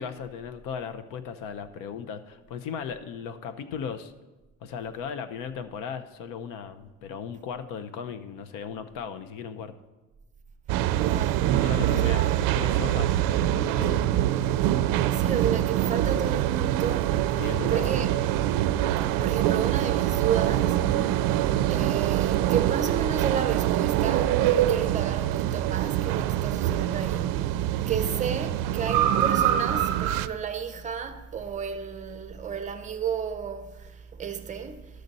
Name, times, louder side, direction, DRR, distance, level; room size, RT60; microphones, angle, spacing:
voice 1, 0.0-4.1 4.6-9.7 11.6-12.2 12.5-14.1 17.4-18.0, left 7 dB, 65° left, 0.7 m, -36 dB
sound 1, 10.7-30.3, right 12 dB, 70° right, 0.5 m, -24 dB
voice 2, 10.9-11.5 11.8-12.4 15.1-17.2 17.7-18.1 19.2-20.8 21.7-27.3 27.9-34.8, right 7 dB, 20° right, 0.6 m, -32 dB
sound 2, 11.5-14.3, equal, 40° left, 1.2 m, -50 dB
12.0 x 6.4 x 4.0 m
cardioid pair, 160°, 35 cm